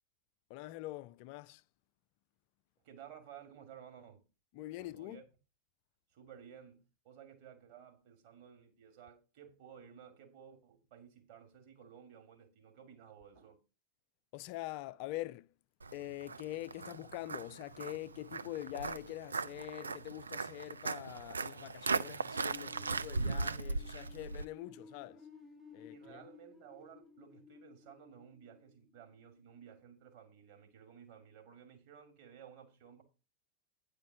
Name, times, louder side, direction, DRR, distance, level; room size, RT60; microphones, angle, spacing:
voice 1, 0.5-1.6 4.5-5.2 14.3-15.5 15.9-25.3 25.7-26.2, left 16 dB, 45° left, 0.4 m, -44 dB
voice 2, 2.8-4.2 4.8-5.2 6.1-13.6 25.9-33.0, right 8 dB, 45° right, 2.5 m, -55 dB
Walk footsteps, 15.8-24.5, right 4 dB, 75° right, 0.4 m, -38 dB
sound 1, 22.3-29.2, left 5 dB, 5° right, 1.0 m, -57 dB
9.6 x 5.1 x 5.9 m
figure-of-eight pair, 90°, 0 cm